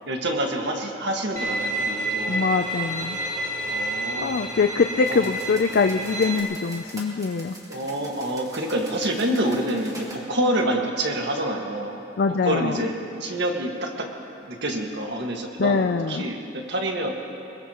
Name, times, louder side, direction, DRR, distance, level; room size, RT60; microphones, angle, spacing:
voice 1, 0.1-2.5 3.6-4.4 5.1-5.3 7.7-12.0 12.4-12.9 13.2-14.1 14.5-17.1, right 1 dB, 65° right, 1 dB, 1.8 m, -27 dB
Bowed string instrument, 1.4-6.4, right 1 dB, 40° right, 2.1 m, -29 dB
voice 2, 2.3-3.2 4.2-7.6 12.2-12.8 15.6-16.3, left 4 dB, 55° left, 7 dB, 0.4 m, -23 dB
sound 1, 5.0-10.2, right 1 dB, 20° right, 2.2 m, -44 dB
22.0 x 22.0 x 3.0 m, 2.8 s
head